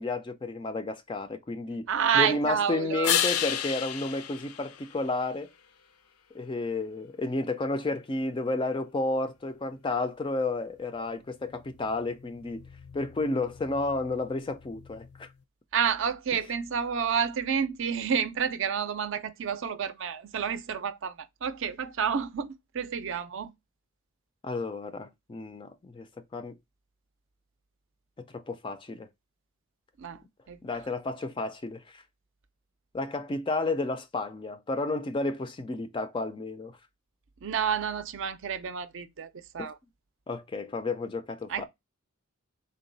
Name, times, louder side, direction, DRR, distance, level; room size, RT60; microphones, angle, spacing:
voice 1, 0.0-1.9 2.1-5.5 6.3-12.6 12.9-15.3 24.4-26.1 26.3-26.5 28.3-29.1 30.6-32.0 32.9-36.8 39.6-39.7 40.3-41.7, left 2 dB, 20° left, 0.3 m, -31 dB
voice 2, 1.9-3.1 15.7-23.5 30.0-30.2 30.5-30.6 37.4-39.8 41.5-41.7, right 7 dB, 60° right, 0.5 m, -29 dB
sound 1, 3.0-5.6 11.3-15.3, left 9 dB, 85° left, 0.5 m, -34 dB
3.8 x 2.2 x 3.8 m
head